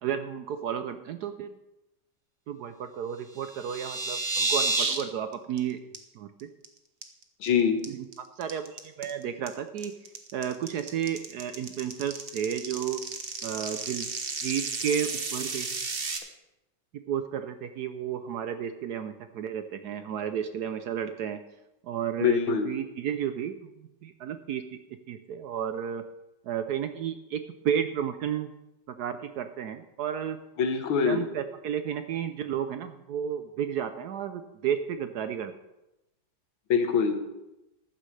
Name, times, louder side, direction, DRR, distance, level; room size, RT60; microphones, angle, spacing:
voice 1, 0.0-1.6 2.5-5.8 6.1-6.5 7.9-8.1 8.4-9.9 10.3-13.0 13.4-14.1 14.4-15.8 17.1-21.4 21.8-24.8 25.1-26.0 26.4-28.5 28.9-30.4 31.0-35.5, right 8 dB, 70° right, 9 dB, 1.0 m, -32 dB
sound 1, 3.3-5.0 5.3-5.6 5.9-6.0 6.4-6.6 7.0-7.5 7.8-16.2, right 3 dB, 40° right, 0.9 m, -31 dB
voice 2, 7.4-7.8 22.2-22.7 30.6-31.2 36.7-37.2, left 7 dB, 85° left, 6 dB, 2.0 m, -24 dB
14.5 x 11.5 x 3.3 m, 0.95 s
omnidirectional pair, 2.1 m